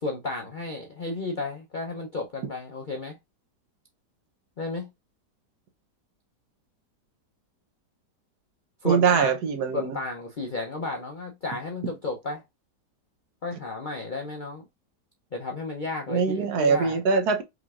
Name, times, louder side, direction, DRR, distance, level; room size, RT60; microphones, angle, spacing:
voice 1, 0.0-3.2 4.6-4.9 8.8-9.3 9.7-12.4 13.4-14.6 15.3-17.0, left 3 dB, 55° left, 0.5 m, -33 dB
voice 2, 8.8-10.0 16.1-17.4, right 5 dB, 70° right, 1.3 m, -23 dB
4.9 x 3.7 x 2.4 m
omnidirectional pair, 1.8 m